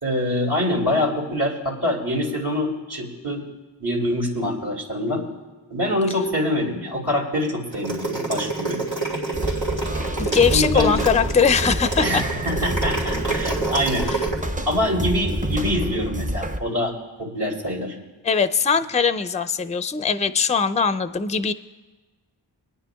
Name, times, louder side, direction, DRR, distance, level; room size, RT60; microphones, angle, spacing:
voice 1, 0.0-3.5 3.8-5.3 5.7-8.8 10.2-11.0 12.0-14.1 14.7-16.9 17.2-17.9, left 1 dB, 60° right, -3 dB, 2.3 m, -25 dB
sound 1, 7.7-14.4, right 3 dB, 85° right, 2.9 m, -27 dB
sound 2, 9.3-16.6, equal, 20° right, 0.6 m, -28 dB
voice 2, 10.2-12.2 14.1-14.2 18.2-21.5, left 6 dB, 15° left, 12 dB, 0.4 m, -21 dB
27.5 x 9.7 x 2.3 m, 1.2 s
wide cardioid pair, 50°, 44 cm